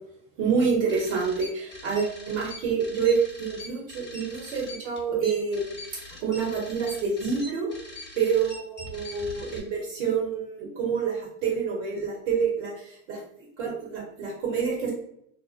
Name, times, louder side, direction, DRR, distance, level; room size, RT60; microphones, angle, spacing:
voice 1, 0.4-7.7 8.2-13.2 13.6-14.9, right 6 dB, 60° right, -2 dB, 0.8 m, -27 dB
sound 1, 0.9-9.6, left 1 dB, 25° left, 0.9 m, -43 dB
2.5 x 2.1 x 2.3 m, 0.74 s
hypercardioid pair, 100°, 40 cm